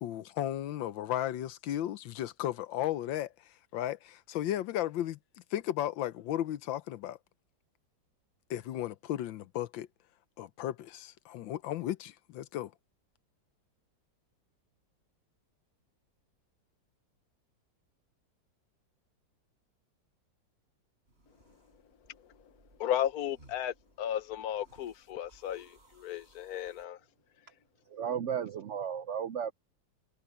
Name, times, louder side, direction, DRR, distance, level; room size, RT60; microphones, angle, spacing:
voice 1, 0.0-5.2 5.5-7.2 8.5-9.9 10.4-12.7, left 12 dB, 85° left, 1.5 m, -35 dB
sound 1, 21.0-26.9, right 2 dB, 35° right, 5.1 m, -64 dB
voice 2, 22.1-22.5 22.8-27.0, left 10 dB, 55° left, 1.5 m, -35 dB
voice 3, 27.9-29.5, right 8 dB, 90° right, 0.6 m, -34 dB
omnidirectional pair, 2.0 m